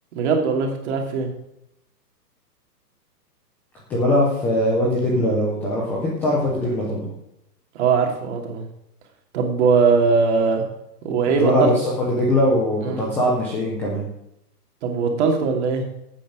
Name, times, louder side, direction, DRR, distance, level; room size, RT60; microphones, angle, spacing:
voice 1, 0.1-1.3 7.7-8.7 9.3-10.6 11.0-11.7 12.8-13.1 14.8-15.8, right 5 dB, 45° right, 2 dB, 2.8 m, -20 dB
voice 2, 3.9-7.1 11.4-14.1, left 1 dB, 5° left, -5 dB, 0.5 m, -21 dB
11.5 x 8.8 x 5.1 m, 0.80 s
hypercardioid pair, 150°, 49 cm